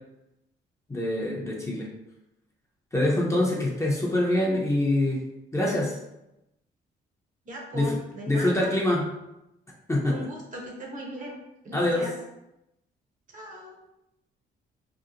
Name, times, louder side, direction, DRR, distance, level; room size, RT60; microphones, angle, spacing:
voice 1, 0.9-1.9 2.9-5.2 5.5-5.9 7.7-8.0 8.3-9.0 9.9-10.3 11.7-12.1, left 1 dB, 15° left, -4 dB, 0.6 m, -25 dB
voice 2, 7.5-8.7 10.1-11.4 11.6-12.1 13.3-13.8, right 1 dB, 40° right, -2 dB, 0.8 m, -38 dB
2.8 x 2.0 x 2.4 m, 0.88 s
cardioid pair, 90°, 20 cm